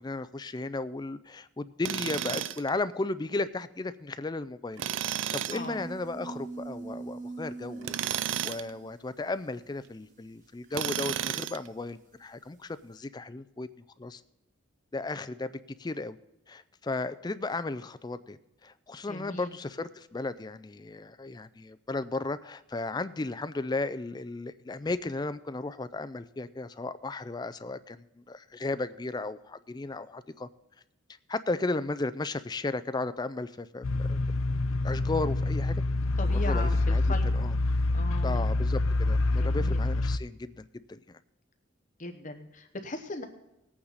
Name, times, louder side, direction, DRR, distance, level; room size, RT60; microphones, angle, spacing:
voice 1, 0.0-13.7 14.0-14.2 14.9-15.5 15.8-16.2 16.5-30.5 31.3-34.2 34.8-35.8 36.3-37.6 38.2-41.2, left 3 dB, 20° left, 13 dB, 0.4 m, -35 dB
Tools, 1.8-2.7 4.8-5.7 7.8-8.7 10.7-11.7, right 10 dB, 60° right, 0.4 m, -32 dB
voice 2, 5.5-5.8 19.1-19.5 36.2-37.3 37.9-38.5 39.3-39.8 42.0-43.2, left 2 dB, 40° left, 6 dB, 0.9 m, -38 dB
sound 1, 5.5-12.7, right 3 dB, 40° right, 0.9 m, -44 dB
sound 2, 33.8-40.2, left 2 dB, 80° left, 0.6 m, -26 dB
19.0 x 8.6 x 4.1 m, 0.94 s
head